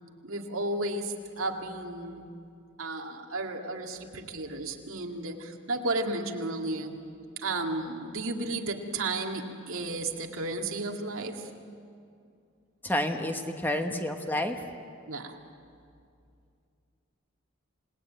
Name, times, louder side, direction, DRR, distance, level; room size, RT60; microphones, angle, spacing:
voice 1, 0.2-2.3 2.8-7.0 7.4-11.5 15.1-15.4, right 2 dB, 85° right, 2 dB, 2.2 m, -33 dB
voice 2, 12.8-14.6, left 1 dB, 10° left, 5 dB, 1.3 m, -29 dB
28.0 x 20.0 x 9.1 m, 2.4 s
head